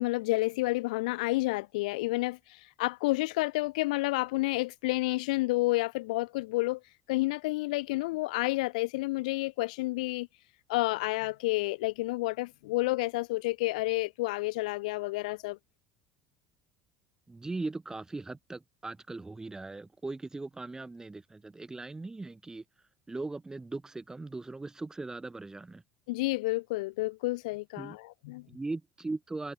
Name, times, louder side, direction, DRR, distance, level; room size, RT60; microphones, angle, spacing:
voice 1, 0.0-6.8 7.1-10.3 10.7-15.6 26.1-28.5, left 21 dB, 75° left, 0.6 m, -30 dB
voice 2, 17.3-22.6 23.1-25.8 27.8-28.0 28.5-29.5, right 3 dB, 15° right, 0.9 m, -39 dB
hypercardioid pair, 70°, 4 cm